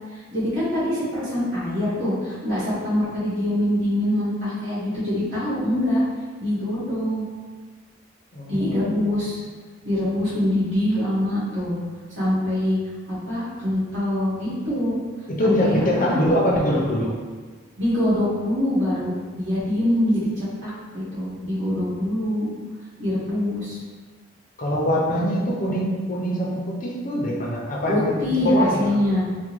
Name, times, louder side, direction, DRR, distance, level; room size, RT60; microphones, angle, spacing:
voice 1, 0.1-6.0 6.4-7.3 8.5-9.4 9.8-11.7 12.1-12.8 13.1-15.0 15.4-16.2 17.8-22.5 23.0-23.8 27.9-29.2, left 1 dB, 70° right, -10 dB, 1.5 m, -24 dB
voice 2, 8.3-9.2 15.3-17.1 24.6-28.1 28.4-28.9, equal, 40° left, -3 dB, 0.5 m, -23 dB
3.4 x 2.2 x 3.0 m, 1.4 s
head